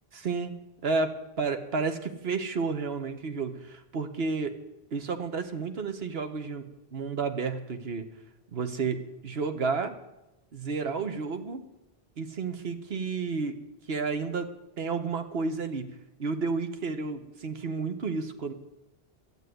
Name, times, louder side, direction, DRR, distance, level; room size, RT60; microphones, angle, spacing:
voice 1, 0.1-0.5 0.8-4.5 4.9-8.1 8.5-9.9 10.5-11.6 12.2-13.6 13.9-14.5 14.8-18.5, right 4 dB, 80° right, 8 dB, 1.4 m, -31 dB
12.0 x 8.2 x 9.3 m, 0.94 s
omnidirectional pair, 1.0 m